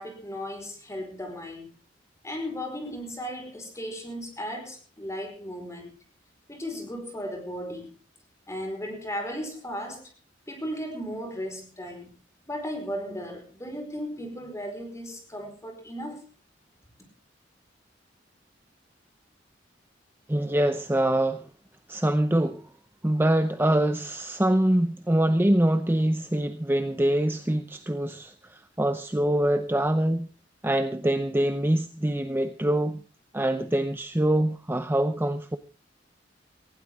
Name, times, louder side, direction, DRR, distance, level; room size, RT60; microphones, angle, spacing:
voice 1, 0.0-1.7 2.2-5.9 6.5-7.9 8.5-10.0 10.5-12.1 12.5-16.2, equal, 15° left, 4.8 m, -36 dB
voice 2, 20.3-21.5 21.9-22.6 23.0-30.3 30.6-33.0 33.3-35.6, right 1 dB, 10° right, 0.7 m, -24 dB
19.0 x 16.0 x 3.6 m
head